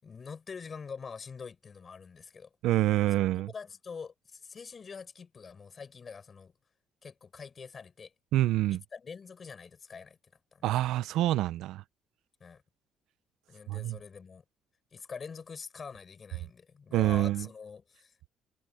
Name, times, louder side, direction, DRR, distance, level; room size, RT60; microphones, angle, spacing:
voice 1, 0.0-2.5 3.4-6.5 7.0-8.1 8.7-10.2 10.5-10.7 12.4-12.6 13.5-14.4 14.9-18.3, left 5 dB, 30° left, 5.6 m, -45 dB
voice 2, 2.6-3.5 8.3-8.8 10.6-11.8 13.7-14.0 16.9-17.5, right 15 dB, 80° right, 0.5 m, -26 dB
cardioid pair, 150°, 0 cm